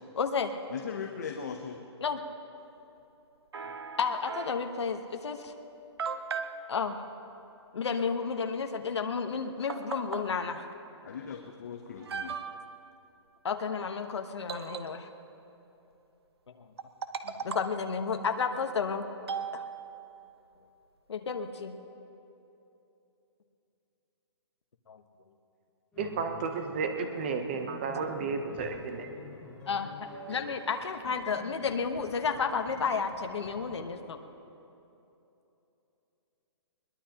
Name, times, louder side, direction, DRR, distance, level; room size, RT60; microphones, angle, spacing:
voice 1, 0.1-0.5 2.0-2.2 4.0-5.5 6.7-7.0 7.7-10.7 13.4-15.1 17.2-19.1 19.5-19.6 21.1-21.8 24.9-25.0 29.7-34.2, left 5 dB, 65° left, 6 dB, 1.2 m, -32 dB
voice 2, 0.7-1.8 11.0-12.4, left 6 dB, 35° left, 3 dB, 0.8 m, -39 dB
sound 1, 3.5-4.7 5.5-5.6 6.0-6.6 9.1-9.2 9.7-10.3 11.3-11.4 12.0-12.8 14.5-15.3 16.8-17.8 19.3-20.2, right 6 dB, 60° right, 0.9 m, -38 dB
sound 2, 25.9-33.9, left 2 dB, 5° left, 2.5 m, -48 dB
voice 3, 26.0-29.1, right 5 dB, 20° right, 6 dB, 0.8 m, -33 dB
21.5 x 20.0 x 2.9 m, 2.9 s
hypercardioid pair, 180°, 15 cm